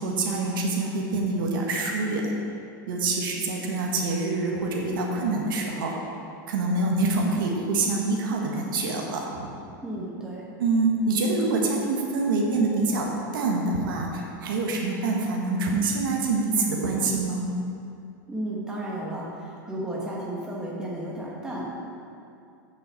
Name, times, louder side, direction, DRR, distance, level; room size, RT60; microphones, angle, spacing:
voice 1, 0.0-2.3 2.9-5.9 6.5-9.5 10.6-17.5, right 3 dB, 80° right, -1 dB, 1.4 m, -26 dB
voice 2, 9.8-10.4 18.3-21.7, right 1 dB, 5° right, -4 dB, 1.3 m, -33 dB
7.2 x 5.5 x 7.1 m, 2.5 s
supercardioid pair, 170°, 11 cm